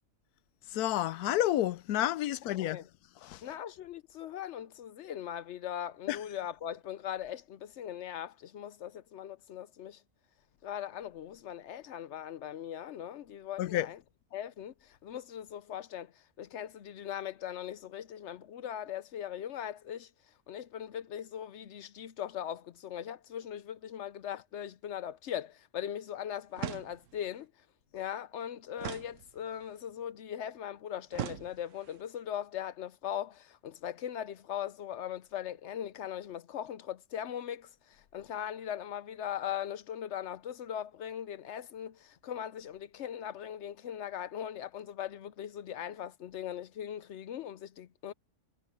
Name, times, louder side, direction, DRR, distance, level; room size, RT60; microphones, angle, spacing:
voice 1, 0.7-2.8 3.2-3.4 6.1-6.2 13.6-13.9, left 13 dB, 80° left, 1.1 m, -30 dB
voice 2, 2.5-2.9 3.4-10.0 10.6-14.0 14.3-16.1 16.4-20.1 20.5-27.5 27.9-48.1, left 10 dB, 60° left, 0.8 m, -40 dB
sound 1, 26.6-27.3 28.8-29.7 31.1-32.0, right 11 dB, 65° right, 0.9 m, -41 dB
omnidirectional pair, 1.6 m